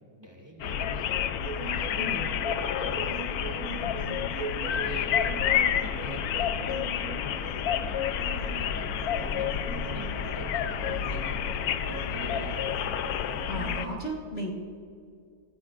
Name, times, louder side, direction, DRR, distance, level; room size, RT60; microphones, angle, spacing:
voice 1, 0.2-1.2 1.6-3.6 4.7-12.8, equal, 15° right, 0 dB, 2.0 m, -45 dB
sound 1, 0.6-13.9, left 9 dB, 75° left, 1.1 m, -29 dB
sound 2, 1.4-14.0, right 7 dB, 70° right, 1.0 m, -41 dB
voice 2, 2.0-2.3 13.5-14.5, equal, 40° left, -3 dB, 1.8 m, -34 dB
sound 3, 2.5-10.6, right 1 dB, 50° right, 2.3 m, -49 dB
23.0 x 15.5 x 2.5 m, 2.3 s
omnidirectional pair, 1.7 m